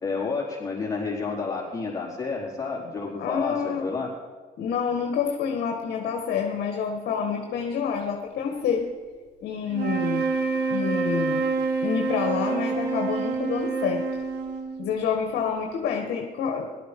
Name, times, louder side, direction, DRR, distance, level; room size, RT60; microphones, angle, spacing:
voice 1, 0.0-4.1, left 4 dB, 20° left, -4 dB, 4.5 m, -30 dB
voice 2, 3.2-3.9 4.6-8.9 9.4-10.2 10.7-11.4 11.8-14.0 14.8-16.7, left 7 dB, 65° left, 3 dB, 1.7 m, -28 dB
sound 1, 9.7-15.1, right 4 dB, 85° right, 1.6 m, -27 dB
17.0 x 12.5 x 5.4 m, 1.5 s
cardioid pair, 110°, 17 cm